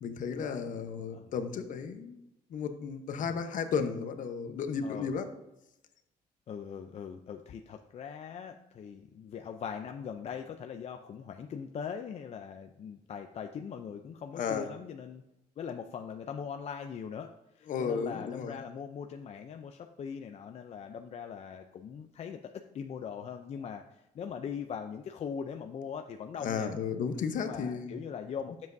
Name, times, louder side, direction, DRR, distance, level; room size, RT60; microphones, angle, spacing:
voice 1, 0.0-2.2 2.5-5.3 14.3-14.7 17.7-18.6 26.4-28.0, left 6 dB, 60° left, 7 dB, 0.9 m, -34 dB
voice 2, 4.8-5.2 6.5-15.2 15.6-26.7 27.3-28.7, left 7 dB, 45° left, 5 dB, 0.5 m, -41 dB
10.5 x 7.4 x 2.7 m, 0.91 s
cardioid pair, 115°, 15 cm